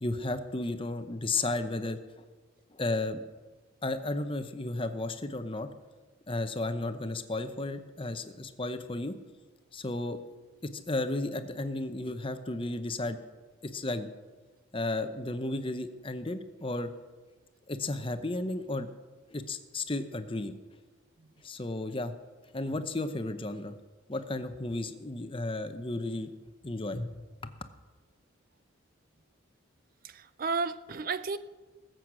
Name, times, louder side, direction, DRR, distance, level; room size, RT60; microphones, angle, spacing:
voice 1, 0.0-2.2 2.7-3.2 3.8-5.7 6.3-9.2 9.7-10.2 10.7-13.2 13.6-14.1 14.7-16.9 17.7-18.9 19.3-20.5 21.4-22.1 22.5-23.7 24.1-26.3 26.6-27.5, left 2 dB, 25° left, 9 dB, 0.8 m, -33 dB
voice 2, 30.0-31.4, right 4 dB, 45° right, 14 dB, 0.4 m, -32 dB
19.5 x 7.8 x 6.2 m, 1.3 s
head